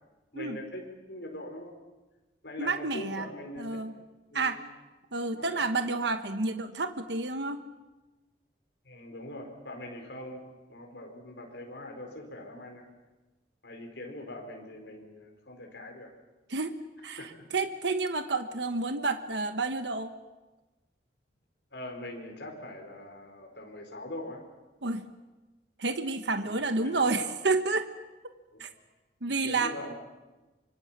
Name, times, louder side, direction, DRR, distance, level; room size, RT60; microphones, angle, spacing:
voice 1, 0.3-1.7 2.4-3.8 4.3-4.6 5.3-5.6 8.8-12.9 13.6-16.1 17.2-17.3 21.7-24.4 26.3-27.3 28.5-28.6 29.2-29.9, left 1 dB, 75° left, 2 dB, 4.7 m, -42 dB
voice 2, 2.6-3.3 3.6-3.9 4.3-4.6 5.1-7.6 16.5-16.7 17.0-20.1 24.8-25.0 25.8-27.9 28.6-28.7 29.2-29.7, right 3 dB, 75° right, 8 dB, 1.2 m, -30 dB
25.0 x 24.0 x 7.5 m, 1.1 s
head